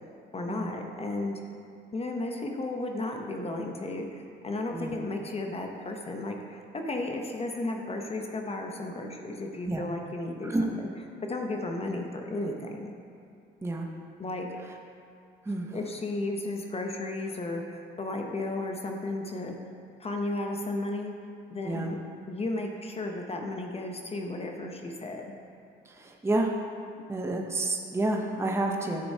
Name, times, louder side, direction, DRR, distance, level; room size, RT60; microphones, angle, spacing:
voice 1, 0.3-1.4 1.9-10.9 11.2-12.9 14.2-14.5 15.7-19.5 20.0-21.1 21.5-22.0 22.3-25.3, left 2 dB, 30° left, 2 dB, 0.7 m, -34 dB
voice 2, 15.4-15.8 21.6-21.9 25.9-26.6 27.1-29.1, right 2 dB, 15° right, 2 dB, 0.7 m, -29 dB
10.5 x 6.7 x 2.8 m, 2.4 s
cardioid pair, 90°, 20 cm